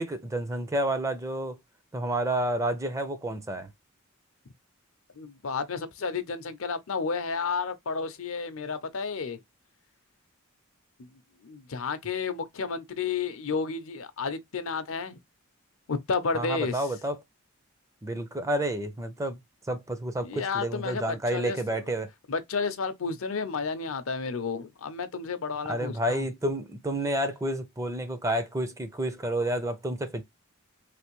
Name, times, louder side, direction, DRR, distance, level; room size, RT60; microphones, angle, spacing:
voice 1, 0.0-1.6 1.9-3.7 16.3-17.2 18.0-19.4 19.7-22.1 25.7-30.2, right 1 dB, 15° right, 0.5 m, -30 dB
voice 2, 5.2-9.4 11.1-15.2 15.9-16.8 20.2-21.9 22.3-26.3, left 5 dB, 65° left, 0.6 m, -32 dB
3.3 x 2.6 x 3.0 m
head